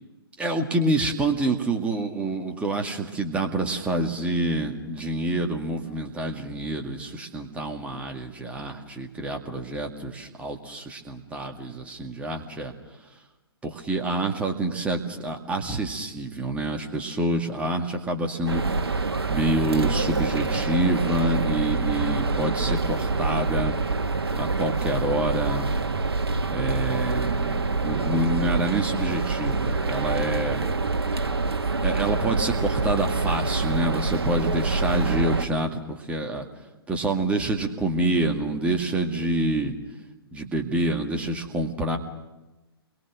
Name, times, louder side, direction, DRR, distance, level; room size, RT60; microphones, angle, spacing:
voice 1, 0.4-12.7 13.6-18.6 19.3-23.7 24.3-25.7 26.5-30.6 31.8-36.5 36.9-39.7 40.3-42.0, right 1 dB, 10° right, 3 dB, 2.1 m, -27 dB
sound 1, 18.5-35.5, right 3 dB, 70° right, 1.4 m, -26 dB
29.0 x 22.5 x 6.3 m, 1.1 s
figure-of-eight pair, 120°, 13 cm